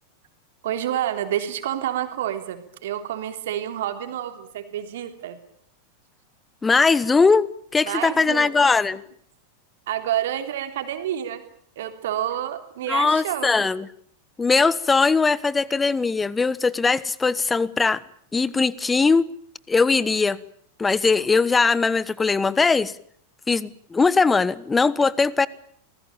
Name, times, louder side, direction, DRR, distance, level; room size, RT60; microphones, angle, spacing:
voice 1, 0.6-5.4 7.8-8.8 9.9-11.4 11.8-13.7, right 11 dB, 55° right, 3.6 m, -29 dB
voice 2, 6.6-7.5 7.7-9.0 12.9-13.9 14.4-18.0 18.3-19.2 19.7-20.4 20.8-22.9 23.5-25.5, left 4 dB, 15° left, 1.2 m, -20 dB
28.0 x 20.0 x 8.9 m
figure-of-eight pair, 90°, 0 cm